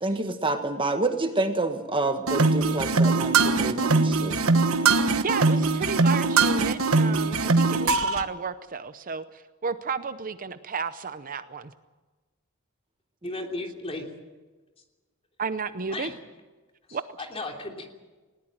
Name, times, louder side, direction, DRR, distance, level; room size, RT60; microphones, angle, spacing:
voice 1, 0.0-4.4, right 2 dB, 25° right, 7 dB, 1.5 m, -28 dB
sound 1, 2.3-8.2, right 3 dB, 90° right, 1.3 m, -21 dB
voice 2, 5.2-11.7 15.4-16.1 16.9-17.0, right 5 dB, 40° right, 12 dB, 0.7 m, -32 dB
voice 3, 13.2-14.1 15.9-16.1 16.9-17.9, left 2 dB, 30° left, 3 dB, 3.1 m, -35 dB
20.0 x 18.5 x 9.0 m, 1.3 s
head